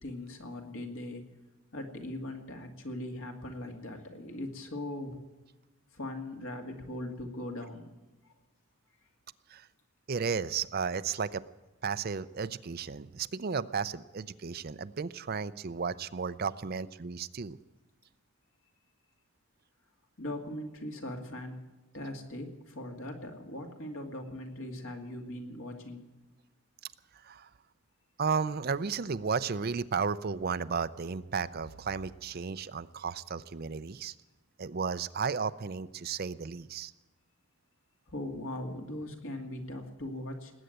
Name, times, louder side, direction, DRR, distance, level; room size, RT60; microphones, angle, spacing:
voice 1, 0.0-1.2 1.7-5.2 5.9-7.9 20.2-21.6 21.9-26.1 38.1-40.5, left 1 dB, 65° left, 3 dB, 2.4 m, -40 dB
voice 2, 10.1-11.4 11.8-17.6 27.2-27.5 28.2-34.1 34.6-36.9, right 5 dB, 45° right, 14 dB, 0.5 m, -33 dB
20.0 x 8.9 x 7.9 m, 1.1 s
head